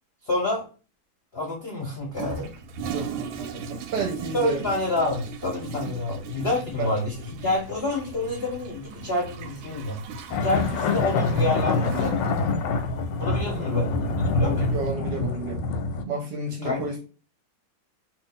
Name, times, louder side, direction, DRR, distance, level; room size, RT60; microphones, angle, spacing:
voice 1, 0.2-0.7 1.3-2.5 4.3-7.1 7.4-10.0 10.3-12.2 13.2-14.7 16.6-16.9, left 2 dB, 45° left, 0.8 m, -28 dB
Toilet flush, 2.1-14.9, right 4 dB, 85° right, 1.4 m, -38 dB
voice 2, 2.9-4.7 5.9-6.0 6.8-6.9 13.5-15.6 16.1-17.0, right 3 dB, 70° right, 1.1 m, -32 dB
sound 1, 10.3-16.0, left 3 dB, 75° left, 1.1 m, -25 dB
2.9 x 2.6 x 3.7 m
omnidirectional pair, 2.2 m